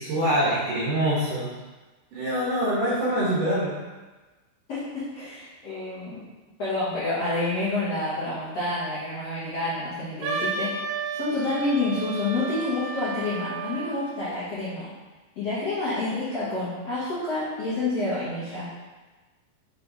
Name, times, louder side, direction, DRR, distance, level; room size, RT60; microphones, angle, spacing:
voice 1, 0.0-1.5 2.1-3.7, equal, 65° right, -8 dB, 2.4 m, -24 dB
voice 2, 4.7-6.2 6.6-10.7 11.1-14.9 15.4-18.7, left 2 dB, 85° left, -11 dB, 1.3 m, -28 dB
Wind instrument woodwind instrument, 10.2-14.1, right 3 dB, 80° right, 2.6 m, -32 dB
6.8 x 3.7 x 4.0 m, 1.2 s
omnidirectional pair, 5.0 m